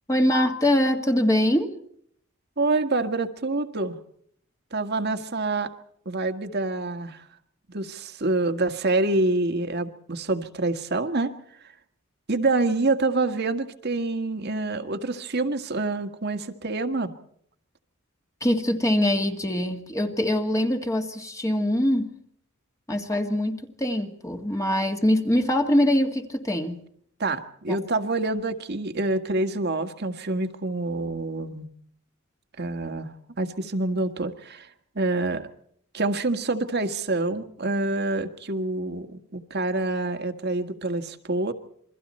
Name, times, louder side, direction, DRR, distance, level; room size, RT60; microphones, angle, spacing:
voice 1, 0.1-1.8 18.4-22.1 22.9-26.8 27.7-27.8, left 1 dB, 15° left, 4 dB, 2.0 m, -23 dB
voice 2, 2.6-4.0 4.7-5.7 6.1-7.2 7.7-11.3 12.3-17.1 27.2-31.7 32.6-34.7 35.0-35.5 35.9-41.5, right 2 dB, 55° right, 7 dB, 1.8 m, -26 dB
28.0 x 23.0 x 4.3 m, 0.66 s
head